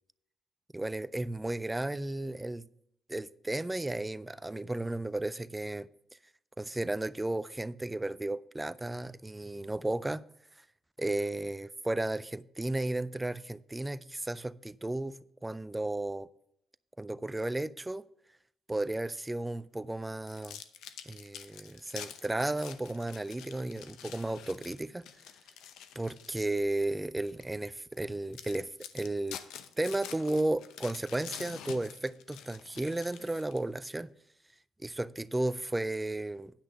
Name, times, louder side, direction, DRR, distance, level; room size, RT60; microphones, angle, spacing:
voice 1, 0.7-2.6 3.1-5.9 6.6-10.2 11.0-16.3 17.0-18.1 18.7-20.6 21.0-25.1 26.0-29.4 29.8-34.1 34.8-36.5, right 2 dB, 15° right, 0.4 m, -34 dB
sound 1, 20.3-26.7 27.2-27.4 27.9-28.0 28.3-33.8, left 9 dB, 90° left, 0.7 m, -47 dB
10.0 x 6.2 x 5.3 m
cardioid pair, 90°, 0 cm